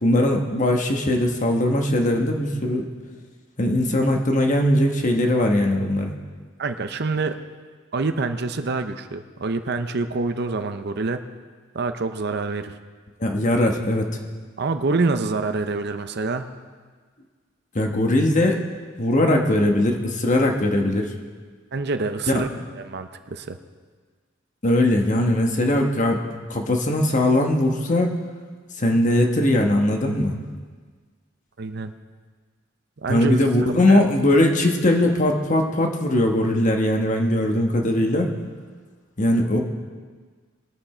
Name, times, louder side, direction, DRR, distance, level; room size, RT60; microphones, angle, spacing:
voice 1, 0.0-2.9 3.6-6.1 13.2-14.0 17.7-18.6 19.0-21.1 22.3-22.4 24.6-26.2 26.5-28.2 28.8-30.4 33.1-38.3 39.2-39.6, left 1 dB, 40° left, 2 dB, 1.3 m, -20 dB
voice 2, 6.6-7.4 7.9-11.3 11.7-12.7 14.6-16.5 21.7-22.5 22.8-23.6 31.6-31.9 33.0-34.1, right 3 dB, 60° right, 9 dB, 0.6 m, -26 dB
21.0 x 7.1 x 4.4 m, 1.5 s
head